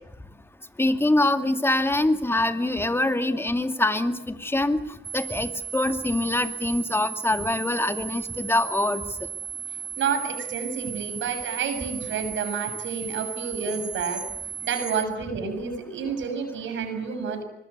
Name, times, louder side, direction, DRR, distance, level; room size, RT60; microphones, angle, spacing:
voice 1, 0.8-4.8 5.1-9.0, left 2 dB, 10° left, 8 dB, 2.4 m, -24 dB
sound 1, 5.0-15.0, right 8 dB, 55° right, 4.4 m, -35 dB
voice 2, 10.0-14.2 14.6-17.4, right 6 dB, 70° right, 8 dB, 7.0 m, -29 dB
25.5 x 21.5 x 8.3 m, 0.83 s
cardioid pair, 90°, 20 cm